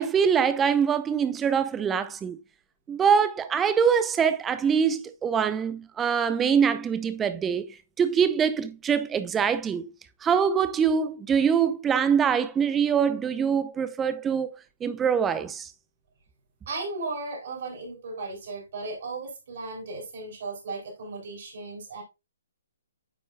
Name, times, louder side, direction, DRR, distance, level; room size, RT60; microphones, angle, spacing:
voice 1, 0.0-2.4 2.9-9.9 10.2-15.7, right 7 dB, 15° right, 0.6 m, -24 dB
voice 2, 16.7-22.0, right 3 dB, 55° right, 3.8 m, -36 dB
9.2 x 5.3 x 2.3 m
figure-of-eight pair, 135°, 0 cm